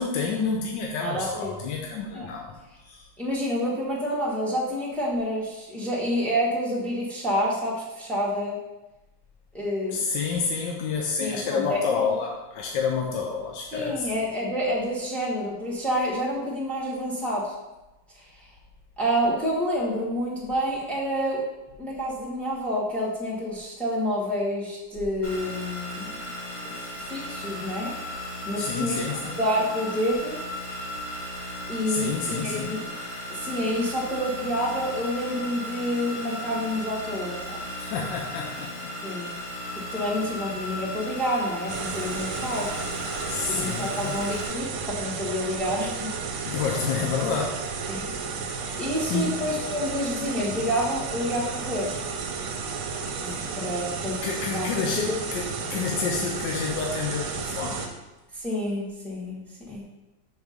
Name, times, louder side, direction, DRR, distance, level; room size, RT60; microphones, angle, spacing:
voice 1, 0.0-2.5 2.8-3.1 9.9-14.1 28.6-29.3 31.9-32.8 37.8-38.7 43.3-44.2 46.5-47.6 49.1-49.4 54.2-57.8, left 5 dB, 70° left, 0 dB, 1.2 m, -29 dB
voice 2, 1.0-1.5 2.1-2.3 3.2-8.6 9.5-10.0 11.2-12.0 13.7-17.5 19.0-21.4 21.8-26.1 26.6-26.7 27.1-27.9 28.5-29.0 29.4-30.3 31.7-32.8 33.3-37.6 39.0-39.3 39.9-42.8 43.5-44.7 44.9-46.1 46.4-46.6 47.9-48.1 48.8-52.0 53.2-54.1 54.5-54.7 55.0-55.2 58.3-59.4 59.7-59.8, equal, ahead, -6 dB, 1.1 m, -28 dB
sound 1, 25.2-44.5, left 1 dB, 45° left, 1.3 m, -36 dB
sound 2, 41.7-57.9, right 5 dB, 70° right, 1.4 m, -33 dB
6.3 x 3.6 x 5.0 m, 1.0 s
omnidirectional pair, 2.4 m